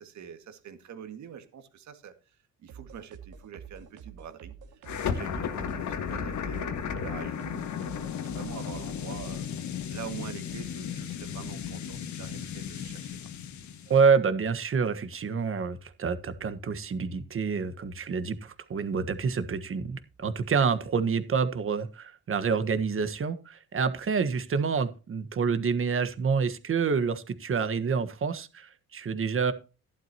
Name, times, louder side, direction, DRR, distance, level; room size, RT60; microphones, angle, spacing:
voice 1, 0.0-2.4 2.6-9.5 9.9-13.1, right 8 dB, 65° right, 8 dB, 2.0 m, -45 dB
sound 1, 2.7-9.5, right 7 dB, 85° right, 2.0 m, -48 dB
sound 2, 4.8-14.0, left 7 dB, 70° left, 1.8 m, -35 dB
voice 2, 13.9-29.5, right 5 dB, 45° right, 11 dB, 1.4 m, -27 dB
12.5 x 11.5 x 2.9 m, 0.33 s
cardioid pair, 90°, 30 cm